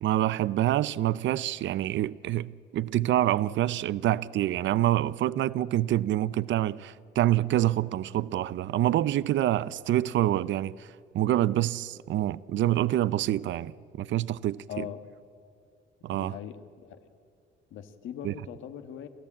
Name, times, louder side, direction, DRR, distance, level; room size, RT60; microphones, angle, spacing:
voice 1, 0.0-10.9 11.1-13.7 14.0-14.8 16.0-16.4 18.2-18.3, right 13 dB, 70° right, 0.5 m, -26 dB
voice 2, 14.7-15.0 16.1-17.0 17.7-19.1, left 8 dB, 80° left, 1.5 m, -40 dB
29.0 x 13.5 x 8.6 m
cardioid pair, 90°, 20 cm